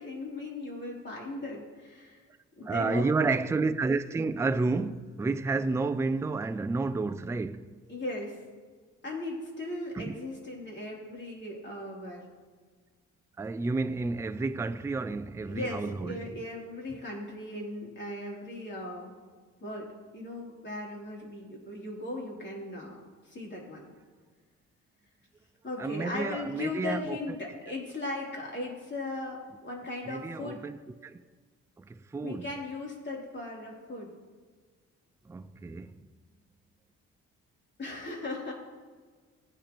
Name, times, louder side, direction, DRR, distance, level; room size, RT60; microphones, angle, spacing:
voice 1, 0.0-2.2 2.6-3.3 7.9-8.4 9.0-12.2 15.4-19.1 19.6-23.0 23.3-23.8 25.6-30.6 32.1-34.1 37.8-38.5, left 2 dB, 35° left, 3.3 m, -38 dB
voice 2, 2.6-7.8 10.0-10.1 13.4-16.2 25.8-27.2 30.1-30.8 31.0-31.2 31.8-32.5 35.3-35.9, right 3 dB, 10° right, 0.4 m, -30 dB
15.5 x 8.7 x 3.0 m
cardioid pair, 90°, 30 cm